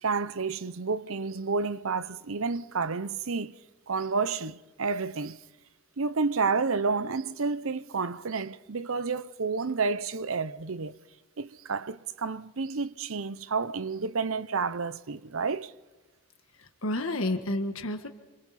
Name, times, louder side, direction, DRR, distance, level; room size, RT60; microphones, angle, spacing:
voice 1, 0.0-3.6 3.9-5.4 6.0-11.0 11.4-15.7, right 4 dB, 70° right, 0.8 m, -30 dB
voice 2, 16.5-18.1, left 1 dB, 70° left, 1.6 m, -30 dB
29.0 x 26.0 x 4.3 m
head